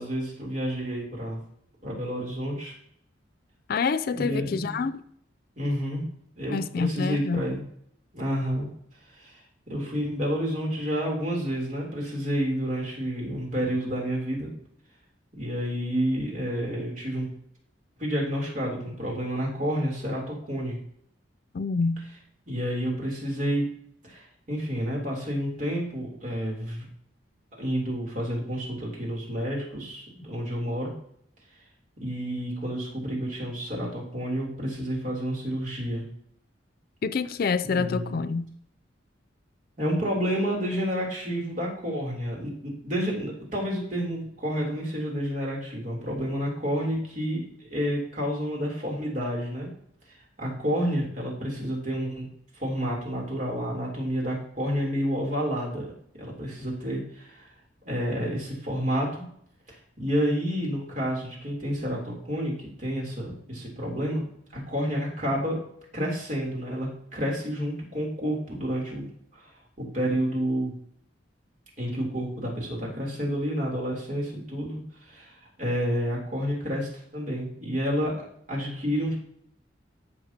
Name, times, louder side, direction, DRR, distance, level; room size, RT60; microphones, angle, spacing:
voice 1, 0.0-1.4 1.8-2.7 4.1-4.8 5.6-6.0 6.4-7.6 8.1-8.7 9.1-14.5 15.3-17.3 18.0-20.8 22.5-23.6 24.0-26.9 27.6-30.9 32.0-36.0 37.7-38.2 39.8-49.7 50.1-52.3 52.5-55.9 56.2-57.5 57.8-59.2 59.7-64.2 64.5-65.6 65.9-69.5 69.8-70.7 71.8-78.1 78.5-79.2, equal, 45° right, 3.3 m, -30 dB
voice 2, 3.7-5.0 6.5-7.5 21.5-22.1 37.0-38.5, left 4 dB, 50° left, 0.4 m, -27 dB
13.5 x 6.2 x 2.9 m
head